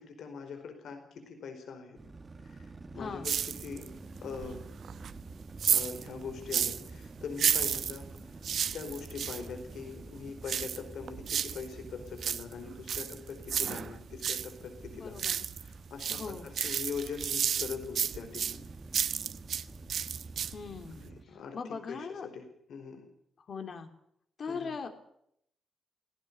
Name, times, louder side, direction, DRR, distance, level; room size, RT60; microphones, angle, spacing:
voice 1, 0.0-2.0 2.4-3.9 4.2-4.6 5.7-15.3 15.6-18.7 20.9-23.1 24.5-24.7, left 5 dB, 70° left, 6 dB, 4.7 m, -42 dB
sound 1, 1.9-21.2, right 3 dB, 25° right, 1.5 m, -49 dB
voice 2, 3.0-3.3 14.9-15.4 16.1-16.5 20.5-21.0 21.5-22.3 23.5-23.9 24.4-24.9, left 5 dB, 45° left, 6 dB, 3.0 m, -39 dB
sound 2, 3.2-4.0 4.3-6.9 7.3-9.5 10.4-11.7 12.0-14.5 14.9-15.7 16.0-19.6 19.9-20.7 21.0-21.1, right 8 dB, 60° right, 1.1 m, -32 dB
18.0 x 17.0 x 9.9 m, 0.73 s
wide cardioid pair, 145°, 0 cm